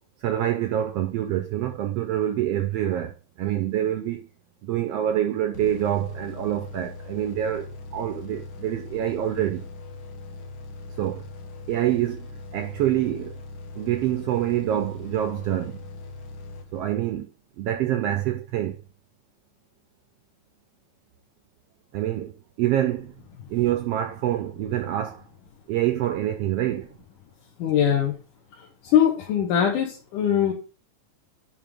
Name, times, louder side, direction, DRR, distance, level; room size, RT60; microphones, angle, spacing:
voice 1, 0.2-4.3 4.6-9.7 11.0-11.2 11.7-12.3 12.5-13.4 13.7-15.8 16.7-17.3 17.6-18.8 21.9-23.1 23.5-25.2 25.7-26.9, right 12 dB, 85° right, 1.4 m, -26 dB
sound 1, 5.5-17.2, left 3 dB, 65° left, 1.3 m, -40 dB
voice 2, 27.6-28.2 28.6-30.5, left 9 dB, 85° left, 2.9 m, -22 dB
10.5 x 3.6 x 3.5 m
omnidirectional pair, 3.5 m